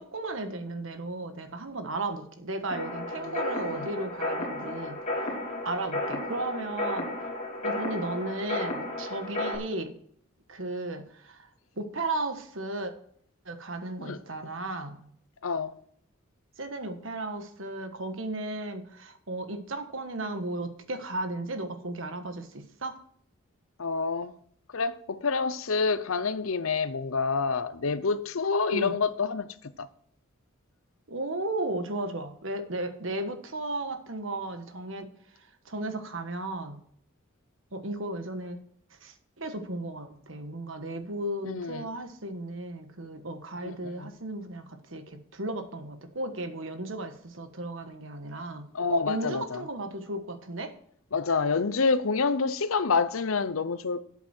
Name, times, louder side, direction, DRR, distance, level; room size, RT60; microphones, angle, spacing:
voice 1, 0.0-5.0 5.6-7.1 7.6-9.9 10.5-11.5 11.8-12.9 13.4-15.1 16.6-23.0 28.7-28.9 31.1-35.1 35.6-36.8 37.7-38.6 39.0-50.7, right 2 dB, 65° right, 1.5 m, -35 dB
sound 1, 2.7-9.6, left 1 dB, 35° left, 3.5 m, -33 dB
voice 2, 3.2-3.9 14.0-14.2 15.4-15.8 23.8-24.3 24.7-29.9 41.5-41.9 43.6-44.1 48.7-49.6 51.1-54.0, left 4 dB, 80° left, 0.8 m, -28 dB
12.5 x 8.1 x 4.5 m
head